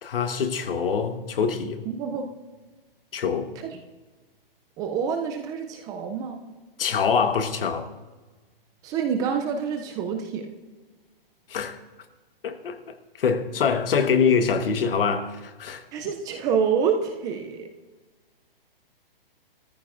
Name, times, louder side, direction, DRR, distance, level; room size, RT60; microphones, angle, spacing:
voice 1, 0.0-1.8 3.1-3.5 6.8-7.9 11.5-11.8 12.4-15.8, left 6 dB, 70° left, 1.3 m, -24 dB
voice 2, 1.9-2.3 4.8-6.4 8.8-10.5 15.9-17.7, right 6 dB, 15° right, 0.4 m, -27 dB
19.5 x 14.0 x 2.5 m
hypercardioid pair, 145°, 29 cm